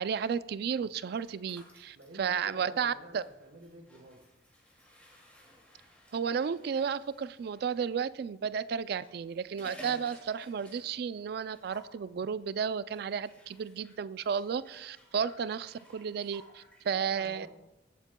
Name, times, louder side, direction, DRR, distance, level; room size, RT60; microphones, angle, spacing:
voice 1, 0.0-3.2 6.1-17.5, right 7 dB, 55° right, 16 dB, 0.3 m, -33 dB
sound 1, 1.1-7.7 8.8-11.2 11.5-12.0 12.9-16.8, left 1 dB, 10° left, 2.3 m, -56 dB
voice 2, 1.9-4.2 16.9-17.5, right 1 dB, 85° right, 0 dB, 1.2 m, -49 dB
16.5 x 8.1 x 2.2 m, 0.97 s
head